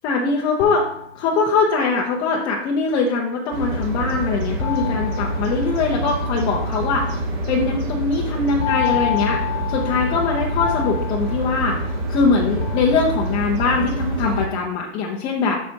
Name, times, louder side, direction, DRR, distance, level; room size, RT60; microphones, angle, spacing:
voice 1, 0.0-0.9 1.1-7.2 7.5-9.4 9.7-11.8 12.1-15.6, left 4 dB, 15° left, -2 dB, 0.4 m, -22 dB
sound 1, 0.6-1.8 4.6-6.2 8.6-12.2 12.6-13.5, left 12 dB, 65° left, 0.8 m, -29 dB
sound 2, 3.5-14.5, right 1 dB, 30° right, 1.3 m, -26 dB
7.4 x 6.3 x 2.8 m, 0.72 s
hypercardioid pair, 150°, 33 cm